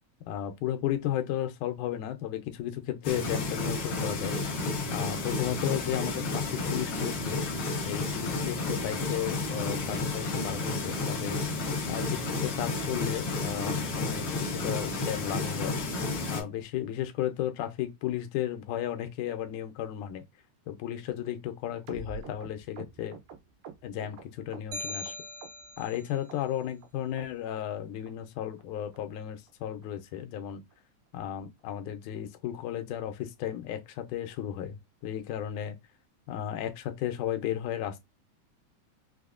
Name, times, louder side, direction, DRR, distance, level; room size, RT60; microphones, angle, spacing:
voice 1, 0.3-4.4 4.9-7.4 7.9-11.4 11.9-15.8 16.3-20.2 20.7-23.2 23.8-25.1 25.8-30.6 31.1-34.8 35.0-35.8 36.3-38.0, left 11 dB, 90° left, 2.1 m, -34 dB
sound 1, 3.0-16.4, left 3 dB, 60° left, 1.4 m, -31 dB
sound 2, 21.9-25.1 25.4-26.0 26.3-26.9 27.2-27.3 27.5-27.8 28.1-28.2 28.4-28.6 28.9-29.0 29.3-29.5 29.8-29.9 30.2-30.4 30.7-30.8 31.1-31.3 31.6-31.7, right 5 dB, 90° right, 2.4 m, -46 dB
sound 3, 24.7-26.1, left 1 dB, 70° right, 0.9 m, -39 dB
5.3 x 2.1 x 2.4 m
omnidirectional pair, 3.5 m